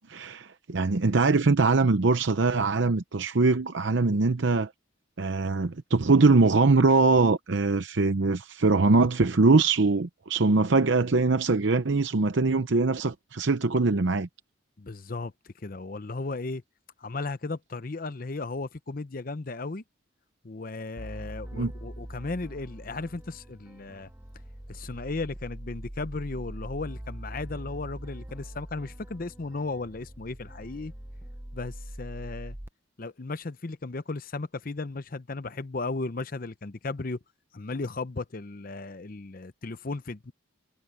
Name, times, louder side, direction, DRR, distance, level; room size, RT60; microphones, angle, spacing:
voice 1, 0.1-4.7 5.2-14.3 21.5-21.7, right 3 dB, 65° right, 0.7 m, -22 dB
voice 2, 14.8-16.6 17.0-19.8 20.4-24.1 24.7-30.9 31.5-32.6 33.0-37.2 37.5-40.3, left 3 dB, 45° left, 0.7 m, -35 dB
sound 1, 21.0-32.7, right 1 dB, 10° right, 0.7 m, -42 dB
head